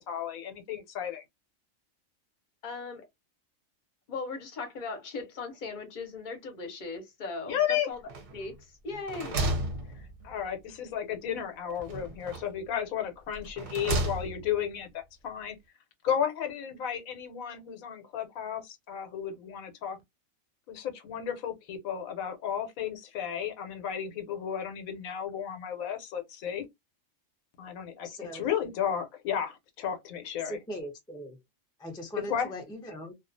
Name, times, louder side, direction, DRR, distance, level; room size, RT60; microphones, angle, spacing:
voice 1, 0.1-1.2 7.5-7.9 9.9-15.6 16.0-20.0 20.7-26.6 27.6-30.6 32.3-32.5, left 8 dB, 90° left, 1.1 m, -33 dB
voice 2, 2.6-3.0 4.1-8.0 8.3-9.4, left 4 dB, 45° left, 0.7 m, -38 dB
sound 1, 8.1-8.6 8.9-10.5 11.8-12.6 13.3-14.6, right 1 dB, 50° right, 0.7 m, -33 dB
voice 3, 28.0-28.5 30.4-31.4 31.8-33.1, equal, 5° left, 0.3 m, -40 dB
2.4 x 2.3 x 2.5 m
omnidirectional pair, 1.4 m